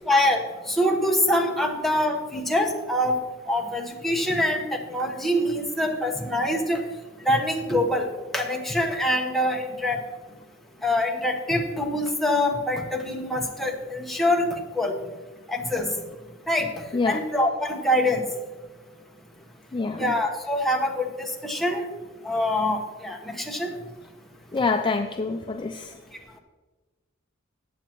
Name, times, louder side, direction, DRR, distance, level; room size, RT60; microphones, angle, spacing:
voice 1, 0.1-3.2 3.5-6.8 7.2-8.1 8.3-10.0 10.8-14.9 15.5-15.9 16.5-16.7 17.1-18.3 20.0-21.8 22.2-23.7, left 1 dB, ahead, 0 dB, 1.2 m, -24 dB
voice 2, 19.7-20.1 24.5-25.9, left 4 dB, 25° left, 5 dB, 0.4 m, -26 dB
14.5 x 8.9 x 3.0 m, 1.3 s
head